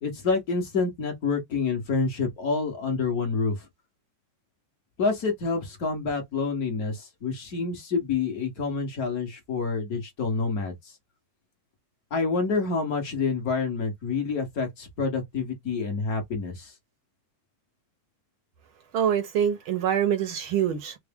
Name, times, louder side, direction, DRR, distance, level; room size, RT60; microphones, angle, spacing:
voice 1, 0.0-3.7 5.0-10.9 12.1-16.7, left 4 dB, 55° left, 1.0 m, -28 dB
voice 2, 18.9-21.0, right 9 dB, 70° right, 1.2 m, -25 dB
4.6 x 2.0 x 3.5 m
omnidirectional pair, 3.3 m